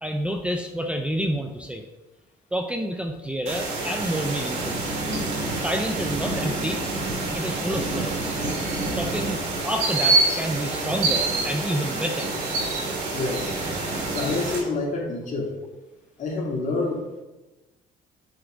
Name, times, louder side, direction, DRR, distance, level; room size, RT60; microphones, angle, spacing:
voice 1, 0.0-1.8 2.5-4.8 5.6-6.8 7.3-8.4 9.0-12.3 12.6-12.8, equal, 5° right, 4 dB, 0.5 m, -29 dB
sound 1, 3.5-14.6, right 2 dB, 90° right, 2.4 m, -26 dB
voice 2, 13.1-13.5 14.1-15.6 16.2-17.2, left 3 dB, 45° left, -2 dB, 2.2 m, -28 dB
7.9 x 3.7 x 4.9 m, 1.1 s
cardioid pair, 110°, 17 cm